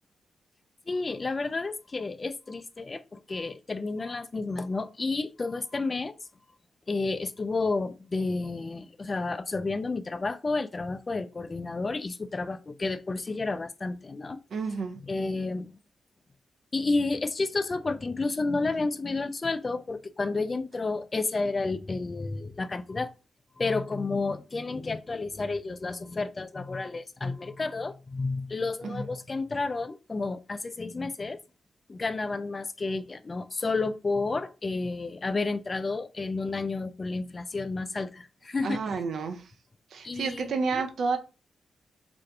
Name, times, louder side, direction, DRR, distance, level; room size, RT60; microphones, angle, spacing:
voice 1, 0.9-6.2 6.9-14.4 15.1-15.7 16.7-23.1 23.6-31.4 31.9-39.0 40.0-40.8, left 3 dB, 40° left, 0.3 m, -31 dB
voice 2, 14.5-15.0 28.8-29.0 38.6-39.5 39.9-41.2, right 4 dB, 70° right, 0.4 m, -30 dB
2.5 x 2.2 x 2.6 m
supercardioid pair, 40°, 0 cm